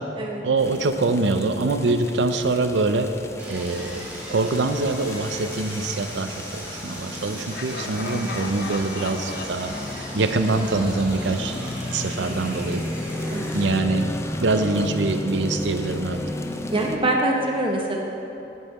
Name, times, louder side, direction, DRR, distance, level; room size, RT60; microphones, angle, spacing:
voice 1, 0.4-3.1 3.5-11.6 11.9-12.8 13.5-14.1 14.4-16.2, right 3 dB, 75° right, 8 dB, 0.5 m, -24 dB
sound 1, 0.6-17.0, left 1 dB, 15° left, 0.5 m, -33 dB
Sawing, 3.4-13.6, right 1 dB, 10° right, 2.1 m, -39 dB
Laughter, 7.5-11.4, left 4 dB, 60° left, 0.5 m, -37 dB
voice 2, 12.2-12.5 13.3-13.7 16.7-18.0, right 1 dB, 30° right, 0 dB, 0.7 m, -25 dB
15.5 x 5.5 x 4.2 m, 3.0 s
head